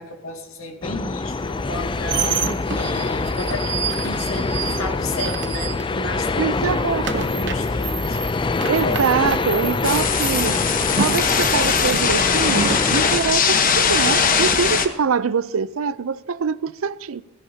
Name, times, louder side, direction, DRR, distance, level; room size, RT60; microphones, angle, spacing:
voice 1, 0.0-2.4 2.7-8.5 8.8-9.1, left 2 dB, 80° left, 2.2 m, -33 dB
sound 1, 0.8-13.2, left 3 dB, 25° left, 0.4 m, -25 dB
sound 2, 1.6-6.2 6.5-12.9, right 7 dB, 55° right, 0.9 m, -30 dB
voice 2, 6.4-7.3 8.7-10.7 11.0-17.2, right 6 dB, 80° right, 0.5 m, -24 dB
sound 3, 9.8-14.9, left 6 dB, 40° left, 1.1 m, -20 dB
16.5 x 16.5 x 2.8 m
head